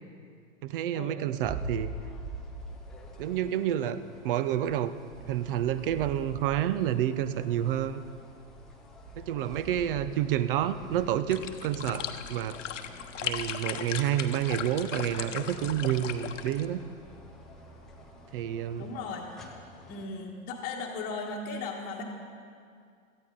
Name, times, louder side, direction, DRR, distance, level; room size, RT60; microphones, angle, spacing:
voice 1, 0.6-1.9 3.2-4.0 4.2-5.0 5.3-8.1 9.2-12.6 13.2-16.8 18.3-18.9, right 11 dB, 40° right, 14 dB, 0.6 m, -29 dB
sound 1, 1.4-20.0, right 1 dB, ahead, 0.4 m, -46 dB
sound 2, 11.3-16.7, left 8 dB, 60° left, 1.0 m, -37 dB
voice 2, 18.8-19.4 19.9-22.0, left 4 dB, 20° left, -5 dB, 1.3 m, -37 dB
18.0 x 13.5 x 3.8 m, 2.3 s
figure-of-eight pair, 110°, 42 cm